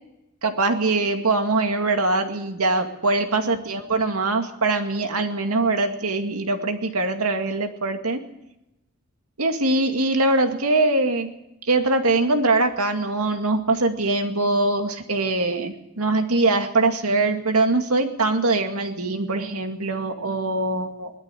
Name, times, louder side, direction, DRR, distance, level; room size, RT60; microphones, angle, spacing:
voice 1, 0.4-8.2 9.4-11.3 11.6-21.1, right 2 dB, 85° right, 6 dB, 2.3 m, -22 dB
20.5 x 13.0 x 9.9 m, 0.89 s
head